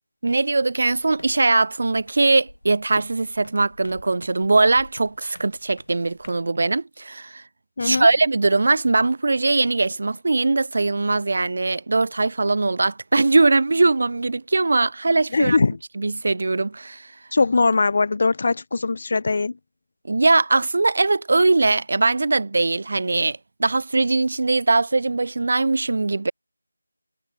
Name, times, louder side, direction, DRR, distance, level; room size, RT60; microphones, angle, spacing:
voice 1, 0.2-7.4 7.8-15.6 16.0-17.1 20.1-26.3, right 3 dB, 50° right, 0.4 m, -21 dB
sound 1, 0.9-6.5, left 1 dB, 75° left, 7.1 m, -46 dB
voice 2, 15.3-15.8 17.3-19.6, left 3 dB, 40° left, 0.6 m, -20 dB
figure-of-eight pair, 165°, 0 cm